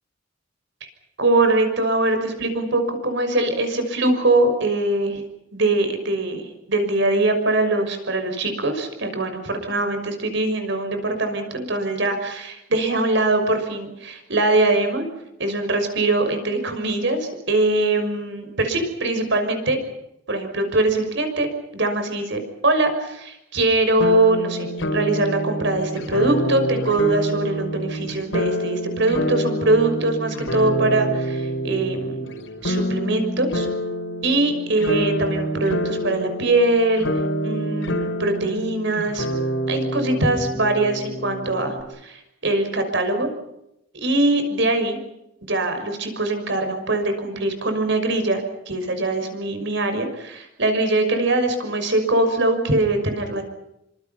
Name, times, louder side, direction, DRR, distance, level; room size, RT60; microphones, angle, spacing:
voice 1, 1.2-5.2 5.5-6.4 6.7-15.0 15.4-19.8 20.3-32.2 32.6-33.7 34.2-37.1 37.4-39.3 39.7-41.7 42.0-43.3 43.9-45.0 45.4-53.4, right 2 dB, 65° right, 7 dB, 6.0 m, -22 dB
sound 1, 24.0-41.8, equal, 70° left, 4.9 m, -27 dB
27.5 x 26.0 x 5.8 m, 0.83 s
head